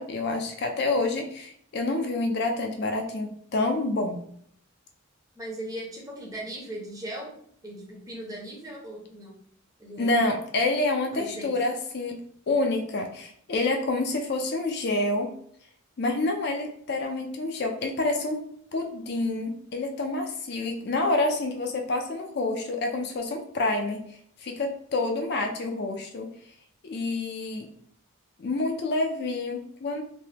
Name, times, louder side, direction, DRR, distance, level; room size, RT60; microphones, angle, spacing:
voice 1, 0.0-4.2 10.0-12.2 12.5-15.3 16.0-18.4 18.7-24.0 24.4-26.3 26.8-27.7 28.4-30.0, left 2 dB, 50° left, 3 dB, 0.4 m, -28 dB
voice 2, 5.3-7.4 7.6-9.3 9.8-10.2 11.1-11.6, right 1 dB, 15° right, -2 dB, 0.7 m, -38 dB
3.3 x 2.2 x 2.8 m, 0.65 s
head